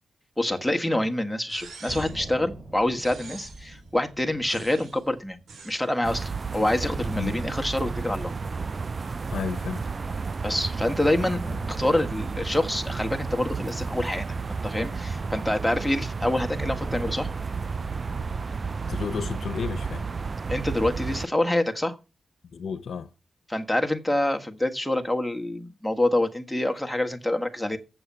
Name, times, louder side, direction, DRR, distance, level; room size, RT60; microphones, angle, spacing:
voice 1, 0.4-5.4 5.6-8.3 10.4-11.4 11.8-14.3 14.6-17.3 20.5-22.0 23.5-27.8, left 1 dB, ahead, 1.6 m, -26 dB
sound 1, 1.5-2.3 3.0-3.7 4.5-5.0 5.5-5.8, right 4 dB, 90° right, 5.3 m, -45 dB
sound 2, 1.9-6.0 6.2-6.3 6.8-10.9 11.4-15.8 16.5-20.9, right 1 dB, 25° right, 4.1 m, -43 dB
sound 3, 6.0-21.3, right 4 dB, 45° right, 0.4 m, -32 dB
voice 2, 9.3-9.9 18.9-20.1 22.5-23.1, left 6 dB, 75° left, 0.8 m, -32 dB
8.1 x 7.0 x 7.3 m
cardioid pair, 65°, 0 cm